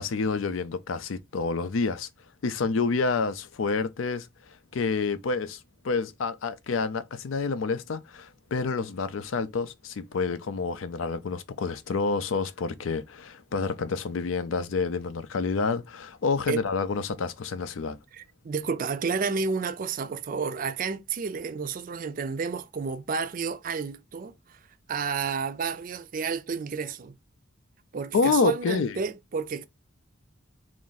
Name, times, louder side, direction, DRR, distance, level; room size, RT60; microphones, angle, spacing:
voice 1, 0.0-2.1 2.4-4.3 4.7-18.0 28.1-29.0, left 4 dB, 85° left, 0.5 m, -28 dB
voice 2, 18.1-24.6 24.9-27.1 27.9-29.7, right 5 dB, 45° right, 0.4 m, -31 dB
3.1 x 2.6 x 3.9 m
head